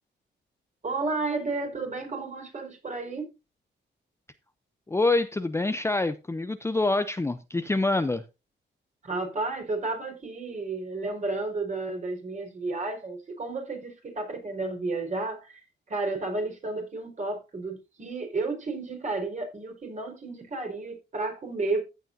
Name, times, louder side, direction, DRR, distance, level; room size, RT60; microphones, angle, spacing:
voice 1, 0.8-3.3 9.0-15.6 15.9-21.8, right 3 dB, 40° right, 4.7 m, -32 dB
voice 2, 4.9-8.2, left 2 dB, 15° left, 0.6 m, -26 dB
15.0 x 8.2 x 2.7 m
cardioid pair, 100°, 19 cm